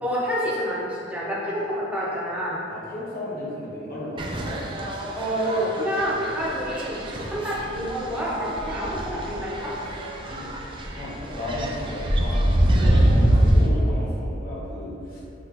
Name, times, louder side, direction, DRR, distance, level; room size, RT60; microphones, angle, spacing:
voice 1, 0.0-2.6 5.2-9.7, equal, 5° right, -7 dB, 0.8 m, -28 dB
voice 2, 2.7-4.6 10.3-10.5 10.8-15.2, left 1 dB, 45° left, -7 dB, 1.2 m, -34 dB
sound 1, 4.2-13.7, right 1 dB, 25° right, 0.4 m, -24 dB
5.8 x 3.0 x 2.9 m, 2.8 s
head